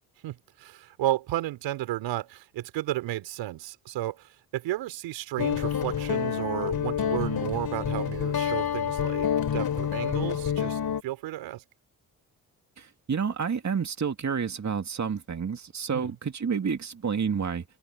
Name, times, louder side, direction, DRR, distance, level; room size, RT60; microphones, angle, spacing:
voice 1, 0.2-11.6 15.9-16.1, right 14 dB, 80° right, 3.8 m, -33 dB
Guitar, 5.4-11.0, left 8 dB, 55° left, 3.2 m, -28 dB
voice 2, 12.8-17.6, right 6 dB, 40° right, 2.3 m, -29 dB
hypercardioid pair, 45°, 44 cm